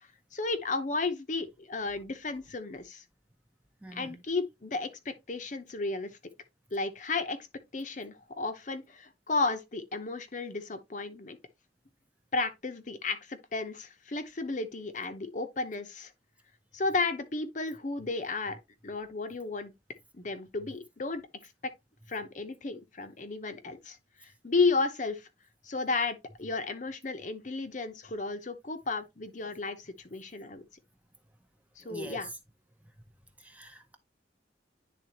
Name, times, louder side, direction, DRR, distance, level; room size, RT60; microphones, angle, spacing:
voice 1, 0.3-3.0 3.9-6.1 6.7-7.4 7.7-11.4 12.3-16.1 16.7-18.6 18.8-19.7 20.1-21.5 22.1-25.3 25.6-30.7 31.8-32.3, left 3 dB, 40° left, 0.7 m, -33 dB
voice 2, 3.8-4.2 31.8-32.3 33.4-34.0, right 1 dB, 10° right, 0.6 m, -45 dB
10.0 x 3.6 x 2.9 m
head